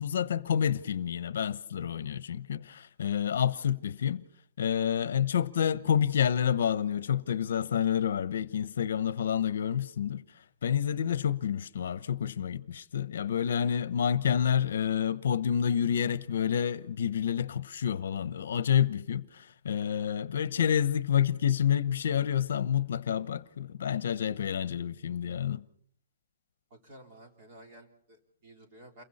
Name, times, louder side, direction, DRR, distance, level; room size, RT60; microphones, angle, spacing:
voice 1, 0.0-4.2 4.6-25.6, left 8 dB, 65° left, 0.9 m, -29 dB
voice 2, 26.7-29.0, right 1 dB, 30° right, 3.6 m, -53 dB
29.0 x 22.5 x 4.3 m
hypercardioid pair, 175°, 0 cm